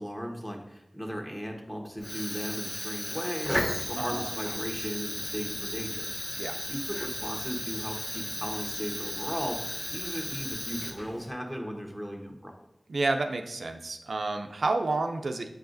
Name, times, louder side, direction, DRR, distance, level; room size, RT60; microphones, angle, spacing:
voice 1, 0.0-6.1 6.7-9.6 9.9-12.6, equal, 10° left, 1 dB, 1.2 m, -36 dB
Fire, 2.0-11.3, equal, 30° left, 1.3 m, -35 dB
voice 2, 4.0-4.3 6.4-6.6 12.9-15.5, right 3 dB, 85° right, 5 dB, 0.4 m, -30 dB
7.8 x 4.7 x 2.6 m, 0.87 s
cardioid pair, 40°, 0 cm